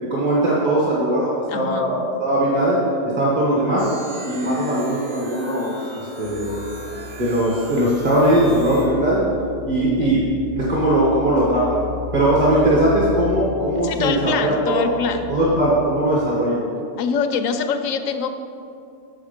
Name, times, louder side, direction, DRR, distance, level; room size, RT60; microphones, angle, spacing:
voice 1, 0.1-2.8 3.2-3.9 4.3-5.8 6.2-6.6 7.2-9.3 9.6-10.3 10.5-11.7 12.1-14.8 15.3-16.6, right 1 dB, 35° right, -6 dB, 1.3 m, -19 dB
voice 2, 1.5-1.9 10.0-10.2 13.8-15.3 17.0-18.3, left 6 dB, 85° left, 7 dB, 1.0 m, -24 dB
sound 1, 3.8-8.8, right 1 dB, 80° right, 1.8 m, -38 dB
sound 2, 6.2-16.2, left 7 dB, 60° left, 0.6 m, -35 dB
7.2 x 6.4 x 5.1 m, 2.6 s
omnidirectional pair, 1.3 m